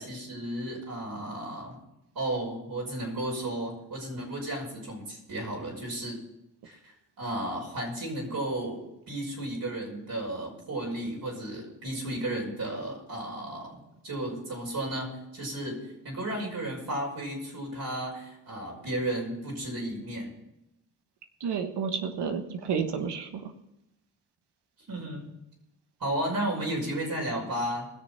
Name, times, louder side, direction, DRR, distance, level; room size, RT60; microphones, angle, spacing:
voice 1, 0.0-1.8 2.1-6.2 6.6-6.9 7.2-20.3 24.9-25.3 26.0-27.9, right 1 dB, 60° right, -2 dB, 5.5 m, -33 dB
voice 2, 21.4-23.5, right 6 dB, 85° right, 6 dB, 1.3 m, -31 dB
20.0 x 6.7 x 5.7 m, 0.91 s
cardioid pair, 60°, 40 cm